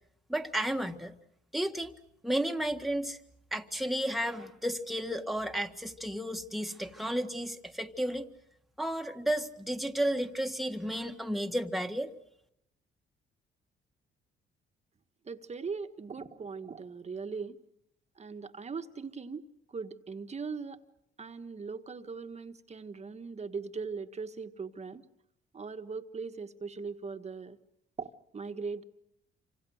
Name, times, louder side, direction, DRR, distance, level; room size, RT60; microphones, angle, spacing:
voice 1, 0.3-1.1 1.5-1.9 2.2-3.2 3.5-8.3 8.8-12.1, right 1 dB, ahead, 5 dB, 1.6 m, -32 dB
voice 2, 15.2-17.6 18.2-20.8 21.2-25.0 25.5-27.6 28.0-28.8, right 5 dB, 35° right, 8 dB, 1.4 m, -40 dB
27.5 x 26.0 x 6.4 m, 0.79 s
cardioid pair, 90°, 20 cm